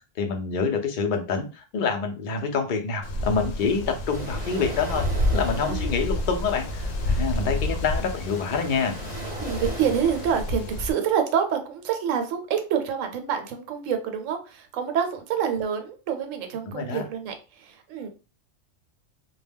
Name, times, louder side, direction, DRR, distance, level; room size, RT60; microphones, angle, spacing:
voice 1, 0.2-5.1 5.3-9.0 16.7-17.1, left 5 dB, 65° left, 4 dB, 0.5 m, -27 dB
Wind, 3.0-10.9, left 1 dB, 85° left, 1.0 m, -29 dB
sound 1, 4.1-10.4, right 1 dB, 40° right, 0.7 m, -39 dB
voice 2, 5.5-6.0 9.4-18.1, right 8 dB, 80° right, 6 dB, 1.0 m, -27 dB
2.2 x 2.0 x 3.3 m, 0.32 s
omnidirectional pair, 1.3 m